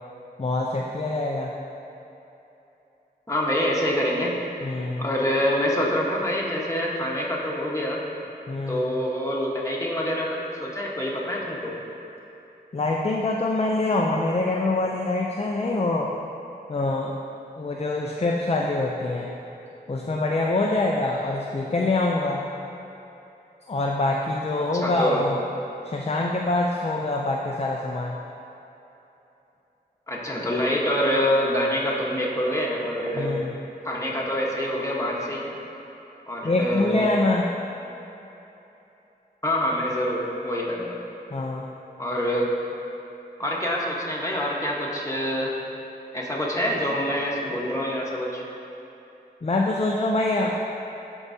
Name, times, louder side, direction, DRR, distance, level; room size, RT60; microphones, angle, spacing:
voice 1, 0.4-1.5 4.6-5.0 8.5-8.8 12.7-16.1 16.7-17.1 17.6-19.3 19.9-22.5 23.7-25.4 25.8-28.2 33.2-33.5 36.4-37.4 41.3-41.6 49.4-50.7, left 2 dB, 40° left, -1 dB, 0.5 m, -25 dB
voice 2, 3.3-4.3 5.0-8.0 8.7-11.7 24.7-25.2 30.1-33.4 33.8-35.5 36.3-37.1 39.4-41.0 42.0-42.5 43.4-45.5 46.1-48.4, equal, 20° left, -4 dB, 1.3 m, -26 dB
12.0 x 4.7 x 2.8 m, 3.0 s
wide cardioid pair, 45°, 17 cm